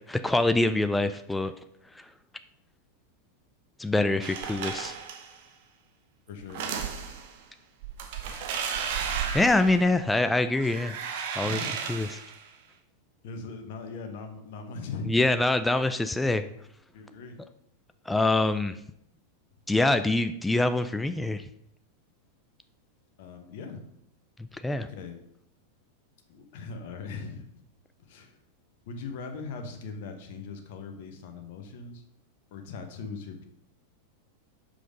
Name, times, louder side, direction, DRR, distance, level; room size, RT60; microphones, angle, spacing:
voice 1, 0.1-1.5 3.8-4.9 9.3-11.0 11.4-11.6 11.9-12.1 15.1-16.5 18.1-18.8 19.7-21.4 24.6-24.9, left 2 dB, 5° left, 10 dB, 0.4 m, -24 dB
sound 1, 4.2-5.4 6.4-7.3 7.8-10.2 10.6-12.4, right 7 dB, 50° right, 1.1 m, -34 dB
voice 2, 6.3-6.7 11.4-12.1 13.2-15.3 16.9-17.4 23.2-23.8 24.8-25.2 26.3-27.5 28.1-28.4 28.9-32.0 32.5-33.5, left 4 dB, 50° left, 6 dB, 1.0 m, -40 dB
5.8 x 5.0 x 5.2 m, 0.72 s
figure-of-eight pair, 90°, 0 cm